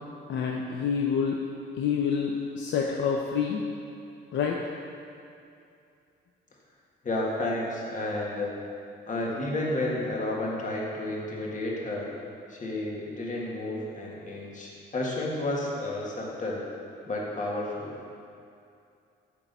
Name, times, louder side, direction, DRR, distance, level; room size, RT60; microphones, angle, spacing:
voice 1, 0.3-1.4 1.8-3.6 4.3-4.6, left 6 dB, 70° left, 0 dB, 0.7 m, -27 dB
voice 2, 7.0-8.5 9.1-12.1 12.5-16.7 17.1-18.0, left 1 dB, 40° left, -3 dB, 1.9 m, -31 dB
9.0 x 3.8 x 6.9 m, 2.5 s
cardioid pair, 90°, 20 cm